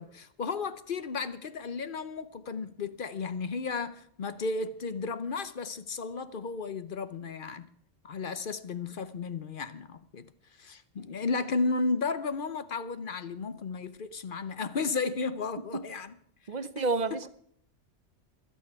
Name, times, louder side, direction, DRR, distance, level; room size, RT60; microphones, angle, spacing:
voice 1, 0.0-7.7 8.0-10.3 10.6-16.1 16.8-16.9, left 4 dB, 50° left, 0.8 m, -33 dB
voice 2, 16.5-17.3, right 3 dB, 40° right, 0.8 m, -30 dB
25.5 x 8.9 x 4.7 m
omnidirectional pair, 1.2 m